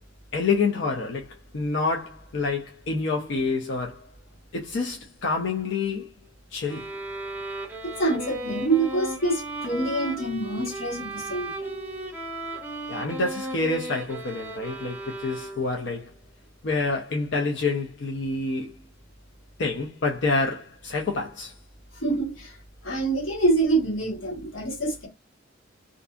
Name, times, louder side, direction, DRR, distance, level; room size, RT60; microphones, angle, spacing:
voice 1, 0.3-4.1 4.5-6.1 6.5-6.9 12.9-16.1 16.6-18.8 19.6-21.6, left 3 dB, 60° left, 0.5 m, -27 dB
sound 1, 6.7-15.9, right 2 dB, 10° right, 0.5 m, -35 dB
voice 2, 7.8-11.7 21.9-22.6 22.8-25.1, right 2 dB, 85° left, 1.3 m, -26 dB
2.6 x 2.5 x 2.3 m
head